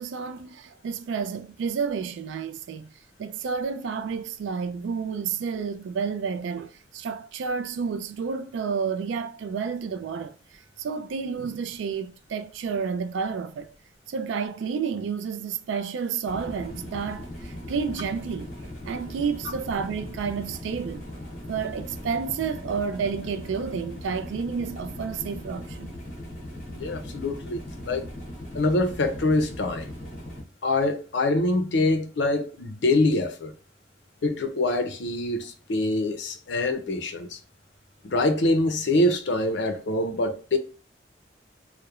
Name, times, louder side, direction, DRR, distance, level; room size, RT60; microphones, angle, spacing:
voice 1, 0.0-2.9 3.2-10.3 10.8-13.7 14.1-18.5 18.9-21.0 21.5-25.9, right 6 dB, 85° right, 0.3 m, -30 dB
sound 1, 16.2-30.4, left 1 dB, 45° left, 0.8 m, -39 dB
voice 2, 26.7-28.0 28.5-29.9 30.6-33.5 34.2-37.4 38.0-40.6, left 2 dB, 75° left, 0.5 m, -25 dB
2.9 x 2.1 x 2.3 m
head